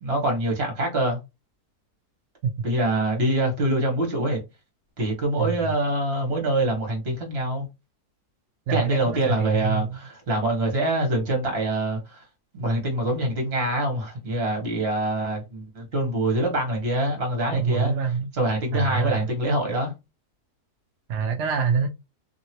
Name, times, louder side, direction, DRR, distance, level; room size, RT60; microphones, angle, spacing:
voice 1, 0.0-1.2 2.6-4.4 5.0-7.7 8.7-12.2 12.5-17.9 18.3-19.9, right 1 dB, 40° right, 1.4 m, -25 dB
voice 2, 5.4-5.7 8.7-10.0 17.5-18.3 18.7-19.3 21.1-21.9, right 6 dB, 70° right, 0.6 m, -26 dB
2.8 x 2.8 x 2.9 m
omnidirectional pair, 1.8 m